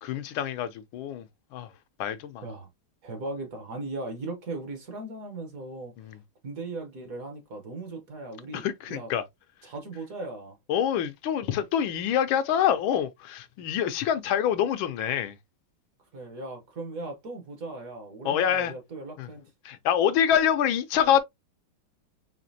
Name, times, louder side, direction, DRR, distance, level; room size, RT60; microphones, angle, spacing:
voice 1, 0.0-1.2 1.5-1.7 2.0-2.4 6.0-6.2 8.5-9.2 10.7-15.4 18.2-18.7 19.2-19.3 19.6-21.2, left 9 dB, 85° left, 1.4 m, -26 dB
voice 2, 3.0-5.9 6.4-8.6 8.9-9.1 9.6-10.6 16.1-19.5, right 2 dB, 50° right, 1.3 m, -38 dB
5.1 x 2.8 x 2.7 m
omnidirectional pair, 2.2 m